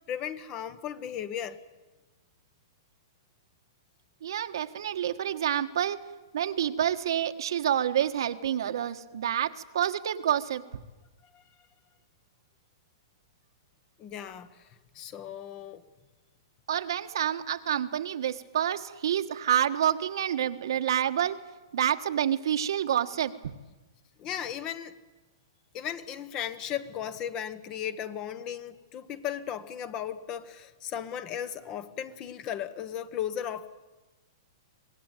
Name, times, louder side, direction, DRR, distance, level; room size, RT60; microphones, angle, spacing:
voice 1, 0.1-1.6 11.3-11.4 14.0-15.8 24.2-24.9 25.7-33.8, left 9 dB, 30° left, 1.3 m, -36 dB
voice 2, 4.2-6.0 6.3-10.6 16.7-21.4 21.7-23.5, right 10 dB, 75° right, 1.4 m, -28 dB
25.0 x 19.5 x 9.2 m
hypercardioid pair, 145°, 2 cm